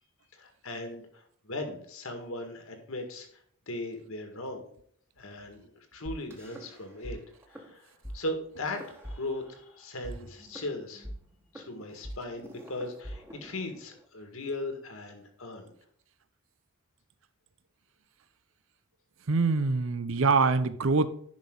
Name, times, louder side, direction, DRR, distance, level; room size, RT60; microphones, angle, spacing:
voice 1, 0.3-3.3 3.7-4.7 5.2-7.2 7.5-11.1 11.5-15.7, left 2 dB, 65° left, 5 dB, 1.9 m, -38 dB
sound 1, 6.1-7.2 7.4-7.7 8.0-8.2 8.7-9.7 10.0-14.1, equal, 10° right, 1.5 m, -43 dB
voice 2, 19.3-21.1, right 4 dB, 60° right, 14 dB, 0.6 m, -24 dB
10.5 x 5.9 x 3.8 m, 0.63 s
head